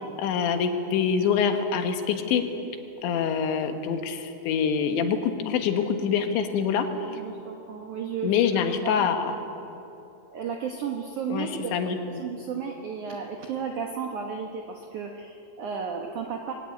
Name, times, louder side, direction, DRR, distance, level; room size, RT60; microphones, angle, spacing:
voice 1, 0.2-2.4 3.0-6.9 8.2-9.3 11.3-12.2, left 7 dB, 75° left, 6 dB, 3.6 m, -25 dB
voice 2, 7.1-9.0 10.3-16.5, right 6 dB, 75° right, 3 dB, 1.8 m, -34 dB
22.5 x 16.5 x 9.6 m, 2.9 s
omnidirectional pair, 5.3 m